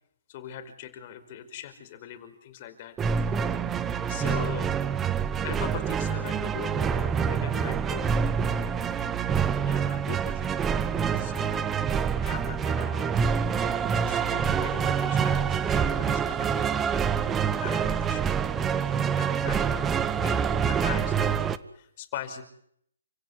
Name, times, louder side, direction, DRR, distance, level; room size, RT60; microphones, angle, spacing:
voice 1, 0.3-3.5 4.1-4.7 5.4-8.2 9.6-10.8 11.1-11.9 12.1-13.2 13.9-22.4, left 9 dB, 35° left, 7 dB, 5.3 m, -41 dB
sound 1, 3.0-21.6, right 7 dB, 10° right, 1.1 m, -26 dB
29.5 x 16.5 x 9.7 m, 0.70 s
hypercardioid pair, 150°, 0 cm